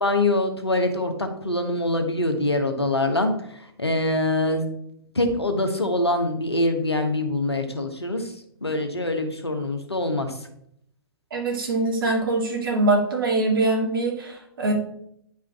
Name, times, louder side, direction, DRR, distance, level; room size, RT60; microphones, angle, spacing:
voice 1, 0.0-3.3 3.8-4.6 5.1-8.3 8.6-10.3, left 2 dB, 85° left, 6 dB, 1.2 m, -24 dB
voice 2, 11.3-14.7, right 2 dB, 60° right, 0 dB, 2.4 m, -23 dB
9.6 x 5.0 x 3.5 m, 0.72 s
figure-of-eight pair, 115°, 13 cm